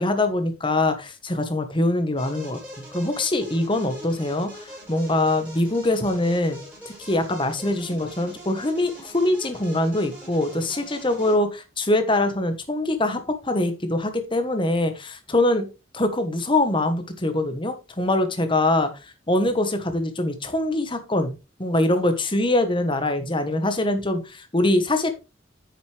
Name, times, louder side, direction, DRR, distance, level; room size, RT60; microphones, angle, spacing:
voice 1, 0.0-2.6 2.9-6.6 6.8-15.7 15.9-21.3 21.6-25.1, left 1 dB, 25° left, 8 dB, 1.3 m, -23 dB
sound 1, 2.2-11.3, equal, 10° right, 4.7 m, -42 dB
9.2 x 6.6 x 3.3 m, 0.29 s
head